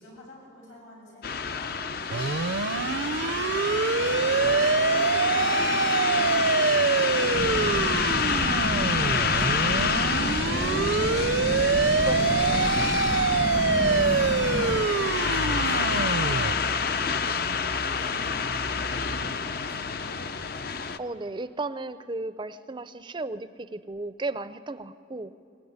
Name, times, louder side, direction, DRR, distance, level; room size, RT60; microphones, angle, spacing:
voice 1, 0.0-10.1 15.2-17.3 17.7-20.2, left 1 dB, 85° left, -2 dB, 7.9 m, -49 dB
sound 1, 1.2-21.0, left 5 dB, 55° left, 0.7 m, -28 dB
sound 2, 2.1-16.5, right 4 dB, 75° right, 0.6 m, -25 dB
sound 3, 7.3-14.8, equal, 40° left, 1.2 m, -32 dB
voice 2, 10.5-11.3 12.0-12.7 21.0-25.3, right 2 dB, 25° right, 13 dB, 0.5 m, -35 dB
23.0 x 19.5 x 9.5 m, 2.5 s
head